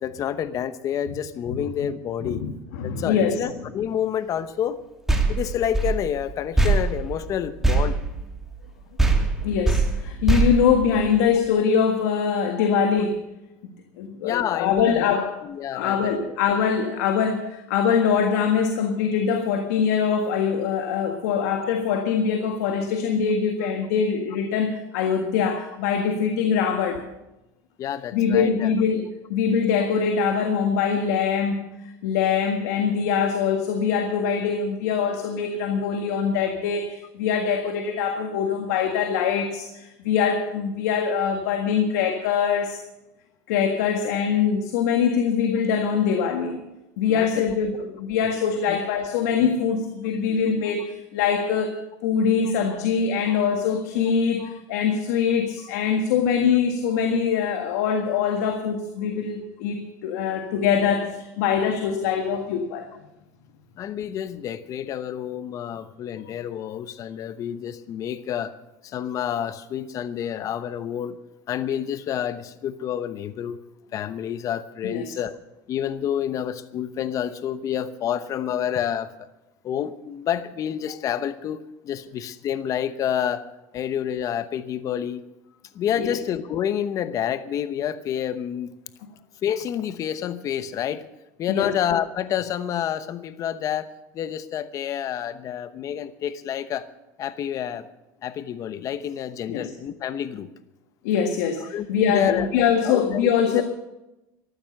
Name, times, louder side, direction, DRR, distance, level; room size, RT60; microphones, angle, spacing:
voice 1, 0.0-2.4 2.8-4.8 5.3-8.0 12.6-12.7 14.2-15.1 15.4-16.3 23.6-23.7 27.8-28.7 47.1-47.4 48.7-48.8 53.3-53.4 54.4-54.6 63.8-68.5 68.8-71.2 71.5-73.6 73.9-75.4 75.7-79.3 79.6-83.5 83.7-85.2 85.7-88.7 89.4-91.0 91.4-96.9 97.2-97.9 98.2-100.5 101.6-102.5 102.8-103.6, left 9 dB, 40° left, 13 dB, 0.9 m, -28 dB
voice 2, 2.2-3.5 9.4-13.2 14.0-15.3 15.7-27.0 28.1-29.0 29.3-31.6 32.0-42.8 43.5-46.6 47.0-51.7 52.0-62.9 74.8-75.1 85.9-86.1 91.5-91.7 99.5-99.7 101.0-103.6, left 7 dB, 85° left, 5 dB, 1.7 m, -23 dB
sound 1, 5.1-8.7 9.0-11.5, right 3 dB, 5° right, 2.5 m, -23 dB
14.0 x 12.0 x 6.6 m, 0.95 s
supercardioid pair, 130°, 9 cm